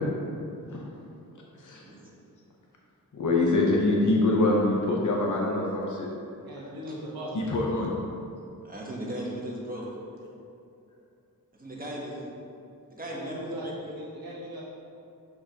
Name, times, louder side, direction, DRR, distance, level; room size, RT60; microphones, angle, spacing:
voice 1, 3.1-6.1 7.3-7.9, left 2 dB, 55° left, -2 dB, 0.9 m, -24 dB
voice 2, 6.4-7.4 13.1-13.7 14.0-14.6, equal, 80° right, -7 dB, 1.2 m, -39 dB
voice 3, 8.6-9.8 11.6-12.2 12.9-13.7, right 1 dB, 25° right, -4 dB, 1.2 m, -36 dB
6.5 x 5.7 x 2.9 m, 2.6 s
wide cardioid pair, 100°, 36 cm